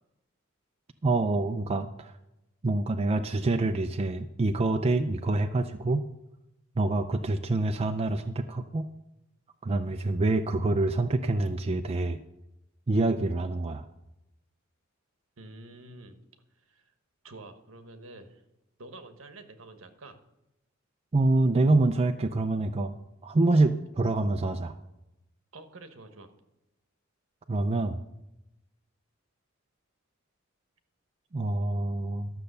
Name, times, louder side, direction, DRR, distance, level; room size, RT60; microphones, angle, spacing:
voice 1, 1.0-2.1 2.6-6.1 6.8-8.9 9.6-12.2 12.9-13.8 21.1-22.9 23.2-24.8 27.5-28.0 31.3-32.3, right 2 dB, 30° right, 6 dB, 0.4 m, -26 dB
voice 2, 15.4-16.2 16.7-16.8 17.2-18.4 18.8-20.2 24.0-24.2 25.5-26.3, right 2 dB, 70° right, 8 dB, 1.2 m, -48 dB
12.5 x 6.7 x 6.6 m, 0.92 s
head